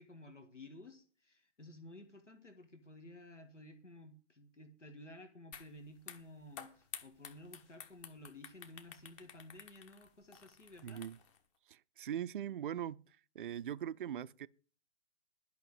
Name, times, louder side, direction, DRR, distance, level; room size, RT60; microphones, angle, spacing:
voice 1, 0.0-11.0, left 1 dB, 85° left, 1.8 m, -54 dB
sound 1, 5.5-5.7 6.0-11.4, left 7 dB, 25° left, 1.1 m, -51 dB
voice 2, 10.8-11.2 11.7-13.0 13.3-14.5, right 10 dB, 50° right, 0.4 m, -41 dB
11.5 x 5.8 x 8.0 m
figure-of-eight pair, 125°, 35 cm